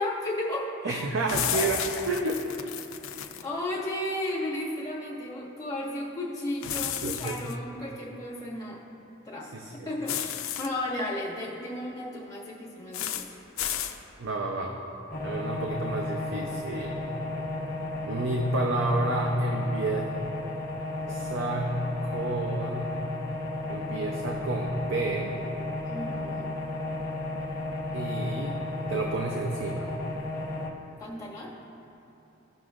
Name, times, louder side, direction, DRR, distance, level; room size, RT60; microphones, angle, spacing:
voice 1, 0.0-1.1 1.5-1.7 3.4-8.8 9.2-9.5 9.8-13.4 25.8-26.5 31.0-31.5, left 1 dB, 20° left, -7 dB, 1.8 m, -34 dB
voice 2, 0.8-2.4 7.0-7.4 9.5-9.9 14.2-14.8 15.2-17.0 18.1-20.0 21.1-22.9 23.7-25.4 27.9-28.6 28.9-29.9, right 2 dB, 65° right, 0 dB, 0.6 m, -30 dB
sound 1, 1.3-3.4 6.6-7.5 10.1-10.7 12.9-13.3 13.6-14.0, left 10 dB, 90° left, 0.5 m, -32 dB
sound 2, 15.1-30.7, left 2 dB, 45° left, 1.0 m, -34 dB
17.0 x 6.0 x 2.5 m, 3.0 s
head